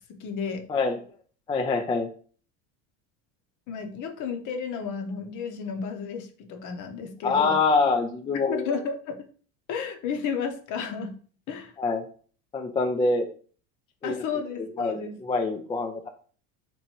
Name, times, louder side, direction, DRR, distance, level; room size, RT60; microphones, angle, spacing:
voice 1, 0.1-0.7 3.7-7.6 8.5-9.3 9.7-11.2 11.5-11.7 14.0-15.2, left 6 dB, 50° left, 6 dB, 0.9 m, -32 dB
voice 2, 1.5-2.1 7.2-8.8 11.8-12.0 12.5-13.3 14.0-14.2 14.6-16.1, left 3 dB, 15° left, 5 dB, 0.3 m, -25 dB
3.1 x 2.6 x 4.2 m, 0.43 s
supercardioid pair, 100°, 38 cm